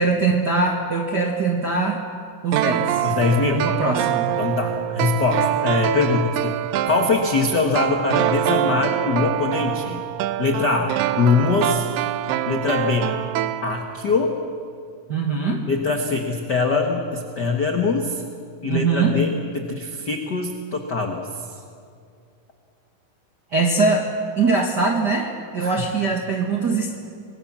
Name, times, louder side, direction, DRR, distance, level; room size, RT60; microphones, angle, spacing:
voice 1, 0.0-2.0 2.4-3.1 3.4-4.3 15.1-15.6 18.6-19.2 23.5-24.1 24.4-27.0, right 4 dB, 60° right, 1 dB, 1.0 m, -22 dB
sound 1, 2.5-14.2 14.4-14.5, right 13 dB, 75° right, 2.2 m, -25 dB
voice 2, 3.0-3.7 4.4-6.6 6.8-10.0 10.4-11.9 12.2-13.1 13.6-14.4 15.7-18.2 18.6-21.2 25.6-25.7, left 4 dB, 80° left, 3 dB, 0.9 m, -22 dB
26.5 x 20.5 x 7.3 m, 2.4 s
omnidirectional pair, 4.4 m